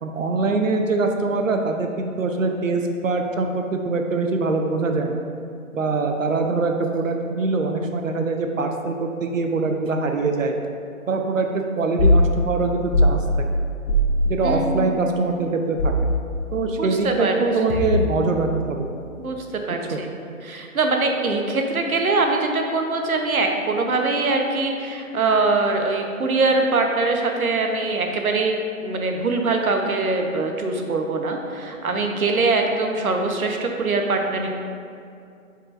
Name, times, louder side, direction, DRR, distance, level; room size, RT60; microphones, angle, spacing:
voice 1, 0.0-5.2 5.7-10.5 11.1-13.2 14.2-15.9 16.5-18.9 19.9-20.0, right 3 dB, 65° right, 4 dB, 0.7 m, -23 dB
sound 1, 12.0-12.2 12.9-13.2 13.9-14.1 15.8-16.1 17.7-18.2, left 1 dB, 70° left, 1.3 m, -18 dB
voice 2, 14.4-14.9 16.7-17.3 19.2-20.1 20.4-34.5, right 3 dB, 80° right, 3 dB, 1.0 m, -23 dB
8.0 x 5.4 x 2.5 m, 2.4 s
hypercardioid pair, 170°, 42 cm